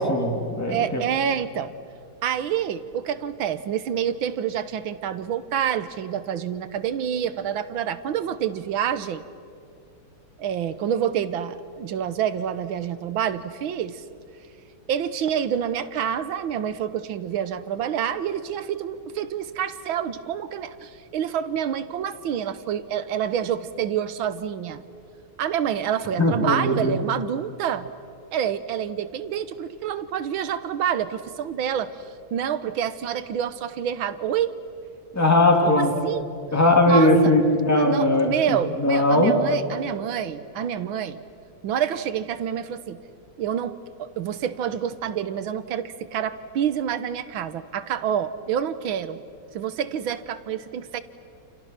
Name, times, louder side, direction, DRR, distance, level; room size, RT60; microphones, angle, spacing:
voice 1, 0.0-1.0 26.2-27.0 35.1-35.9 36.5-39.4, left 1 dB, 5° left, 1 dB, 2.8 m, -19 dB
voice 2, 0.7-1.7 2.2-9.2 10.4-14.0 14.9-24.8 25.4-27.9 28.3-31.9 32.3-34.5 35.6-36.3 36.9-37.3 37.7-41.2 41.6-43.0 43.4-49.2 49.5-51.0, right 9 dB, 70° right, 13 dB, 1.7 m, -27 dB
29.5 x 29.0 x 6.0 m, 2.4 s
omnidirectional pair, 2.3 m